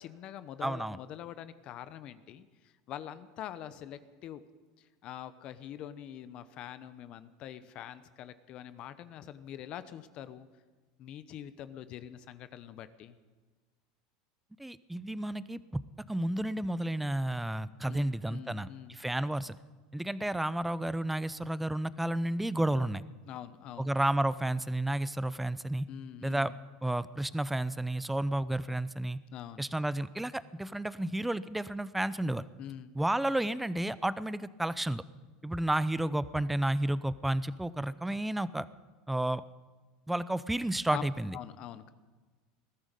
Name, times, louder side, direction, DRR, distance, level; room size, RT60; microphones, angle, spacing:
voice 1, 0.0-4.4 4.8-10.5 11.0-13.2 17.9-19.0 23.3-23.9 25.9-26.6 29.3-29.6 32.6-33.0 40.9-41.0 41.3-41.9, left 11 dB, 50° left, 13 dB, 0.9 m, -44 dB
voice 2, 0.6-1.0 14.6-15.6 16.1-19.6 19.9-23.0 23.8-25.9 26.2-26.5 26.8-29.2 29.6-32.4 33.0-35.0 35.4-38.7 39.1-39.4 40.1-41.3, right 1 dB, 5° right, 16 dB, 0.6 m, -31 dB
20.5 x 13.5 x 5.3 m, 1.3 s
supercardioid pair, 115°, 2 cm